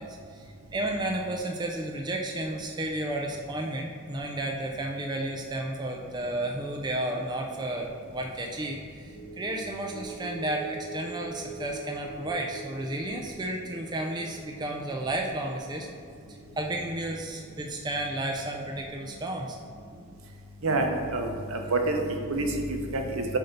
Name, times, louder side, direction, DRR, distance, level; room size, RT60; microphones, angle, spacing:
voice 1, 0.0-15.9 16.3-19.6, right 1 dB, 20° right, 1 dB, 0.4 m, -32 dB
sound 1, 9.0-19.6 19.9-20.1, right 2 dB, 65° left, 1.4 m, -44 dB
voice 2, 20.6-23.4, right 2 dB, 70° right, 3 dB, 0.8 m, -28 dB
7.8 x 2.7 x 5.2 m, 2.4 s
head